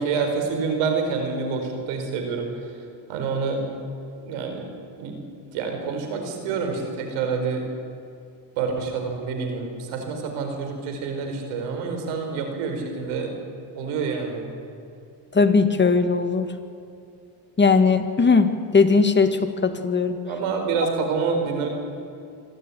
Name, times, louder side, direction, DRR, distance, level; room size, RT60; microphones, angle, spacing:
voice 1, 0.0-2.5 3.1-3.6 4.2-4.6 5.0-5.2 5.5-7.6 8.6-13.3 13.7-14.5 20.2-21.7, right 5 dB, 85° right, 4 dB, 4.6 m, -27 dB
voice 2, 15.4-16.5 17.6-20.2, left 4 dB, 20° left, 7 dB, 1.9 m, -19 dB
26.0 x 12.5 x 9.8 m, 2.5 s
supercardioid pair, 90°, 48 cm